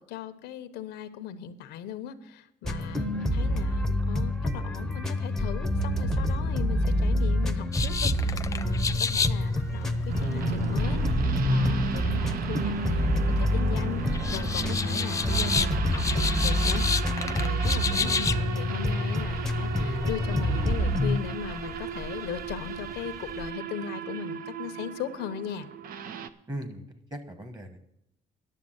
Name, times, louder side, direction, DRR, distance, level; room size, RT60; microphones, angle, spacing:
voice 1, 0.0-25.7, left 9 dB, 80° left, 11 dB, 0.9 m, -38 dB
sound 1, 2.6-21.2, left 1 dB, 5° left, 0.8 m, -27 dB
sound 2, 7.7-23.5, left 5 dB, 20° left, 0.4 m, -33 dB
sound 3, 10.1-26.3, right 8 dB, 60° right, 0.7 m, -36 dB
voice 2, 17.9-18.4 26.5-27.8, equal, 25° right, 9 dB, 1.4 m, -38 dB
11.0 x 7.1 x 7.8 m, 0.83 s
cardioid pair, 110°, 17 cm